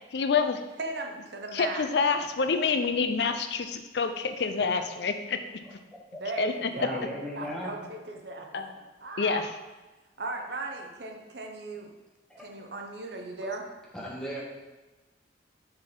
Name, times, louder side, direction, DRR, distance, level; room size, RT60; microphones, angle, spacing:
voice 1, 0.1-0.6 1.5-5.4 6.4-6.9 8.5-8.7 9.2-9.5, left 5 dB, 65° left, 8 dB, 0.5 m, -27 dB
voice 2, 0.8-1.9 2.2-2.7 6.2-7.1 7.4-8.5 8.7-9.4 10.2-11.9 12.4-13.6, right 3 dB, 65° right, 2 dB, 0.9 m, -37 dB
voice 3, 6.8-7.7 12.3-12.5 13.4-13.5 13.9-14.4, equal, 5° left, -5 dB, 1.3 m, -36 dB
6.4 x 4.1 x 4.5 m, 1.2 s
head